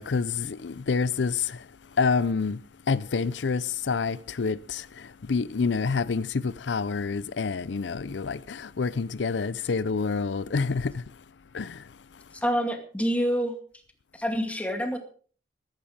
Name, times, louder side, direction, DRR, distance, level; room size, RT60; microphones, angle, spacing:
voice 1, 0.0-1.4 2.0-2.6 2.9-4.8 5.3-10.9 11.5-11.7, left 4 dB, 85° left, 0.5 m, -27 dB
voice 2, 12.4-13.5 14.2-15.0, equal, 10° left, 2.2 m, -26 dB
14.5 x 13.0 x 5.0 m
head